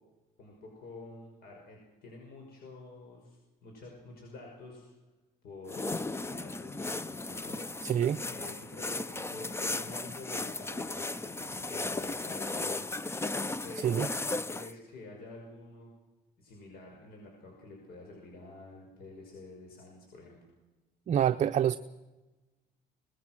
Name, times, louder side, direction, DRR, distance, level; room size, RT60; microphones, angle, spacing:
voice 1, 0.4-4.9 5.4-8.0 8.3-13.3 13.6-14.0 14.5-15.9 16.4-20.4, left 2 dB, 65° left, 6.2 m, -49 dB
sound 1, 5.7-14.7, left 2 dB, 15° left, 0.7 m, -36 dB
voice 2, 7.8-8.2 13.8-14.1 21.1-21.8, right 9 dB, 45° right, 0.7 m, -26 dB
23.5 x 20.5 x 6.2 m
cardioid pair, 110°, 17 cm